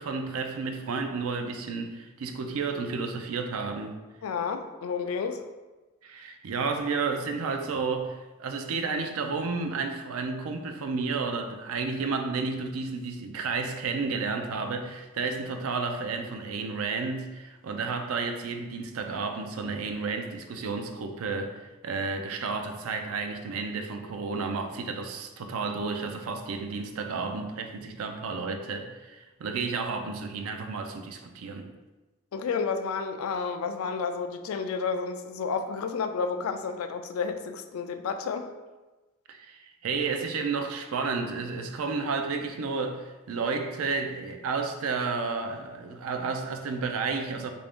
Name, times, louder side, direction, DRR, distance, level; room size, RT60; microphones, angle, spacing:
voice 1, 0.0-4.0 6.0-31.8 39.3-47.5, right 4 dB, 90° right, 6 dB, 0.4 m, -32 dB
voice 2, 4.2-5.4 32.3-38.5, left 5 dB, 85° left, 7 dB, 0.3 m, -31 dB
3.3 x 2.6 x 3.5 m, 1.2 s
head